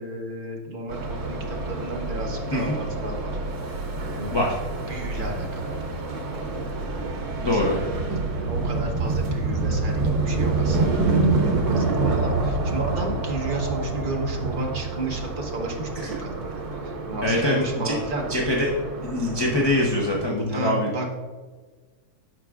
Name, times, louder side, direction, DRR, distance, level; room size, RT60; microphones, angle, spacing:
voice 1, 0.0-3.3 4.1-4.4 4.9-7.1 7.4-7.9 8.4-18.2 20.5-21.1, right 2 dB, 35° right, 0 dB, 1.1 m, -33 dB
sound 1, 0.9-20.2, right 3 dB, 80° right, 1.6 m, -27 dB
voice 2, 7.4-7.8 16.0-16.1 17.2-18.0 18.3-18.7 19.0-20.9, left 1 dB, 30° left, -3 dB, 0.5 m, -23 dB
12.5 x 4.7 x 2.4 m, 1.4 s
omnidirectional pair, 1.6 m